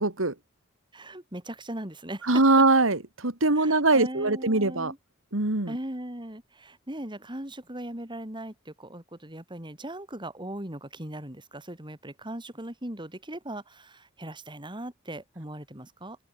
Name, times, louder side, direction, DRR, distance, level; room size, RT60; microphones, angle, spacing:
voice 1, 0.0-0.3 2.3-4.9 5.3-5.8, right 2 dB, 75° right, 2.6 m, -22 dB
voice 2, 0.9-2.3 3.4-5.0 5.7-16.2, right 1 dB, 25° right, 4.9 m, -39 dB
open air
head